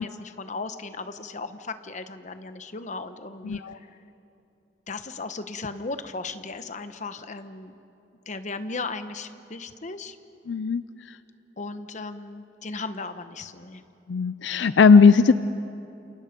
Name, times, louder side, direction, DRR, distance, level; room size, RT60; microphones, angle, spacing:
voice 1, 0.0-3.6 4.9-7.7 8.3-10.2 11.6-13.8, left 3 dB, 40° left, 10 dB, 1.0 m, -36 dB
voice 2, 3.4-3.8 10.5-10.8 14.1-15.3, left 5 dB, 75° left, 14 dB, 0.5 m, -17 dB
29.0 x 28.0 x 5.2 m, 2.8 s
head